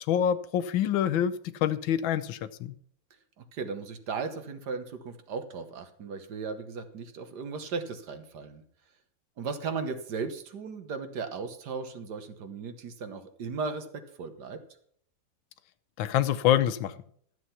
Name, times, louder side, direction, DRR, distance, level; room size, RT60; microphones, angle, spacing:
voice 1, 0.1-2.7 16.0-16.9, left 10 dB, 85° left, 14 dB, 1.5 m, -26 dB
voice 2, 3.4-8.6 9.4-13.9 14.1-14.6, right 5 dB, 60° right, 8 dB, 1.7 m, -36 dB
12.5 x 7.9 x 5.6 m, 0.62 s
omnidirectional pair, 2.1 m